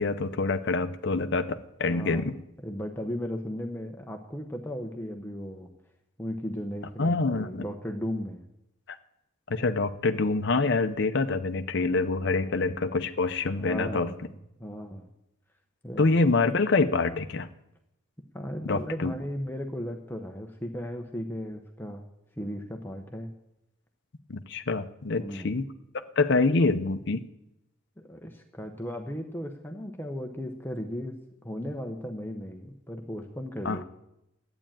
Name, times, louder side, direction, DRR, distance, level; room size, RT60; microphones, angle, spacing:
voice 1, 0.0-2.3 7.0-7.7 9.5-14.1 16.0-17.5 18.7-19.1 24.3-25.6 26.2-27.2 33.6-33.8, left 3 dB, 55° left, 8 dB, 0.6 m, -26 dB
voice 2, 1.8-2.3 2.6-5.7 6.2-8.4 12.3-12.6 13.6-14.3 14.6-15.1 15.8-16.1 18.3-22.1 22.4-23.3 25.2-25.6 28.0-31.2 31.4-33.8, equal, 10° left, 4 dB, 0.8 m, -36 dB
11.5 x 8.8 x 8.9 m, 0.86 s
head